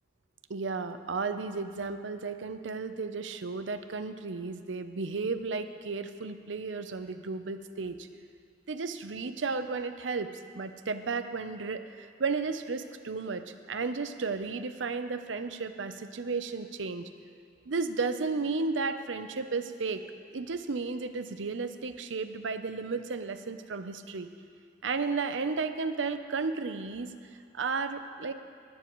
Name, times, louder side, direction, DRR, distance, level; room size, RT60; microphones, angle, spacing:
voice 1, 0.5-8.1 8.7-10.3 10.5-17.1 17.7-20.0 20.3-24.3 24.8-27.1 27.5-28.3, right 4 dB, 75° right, 9 dB, 0.6 m, -33 dB
18.5 x 12.0 x 3.1 m, 2.2 s
head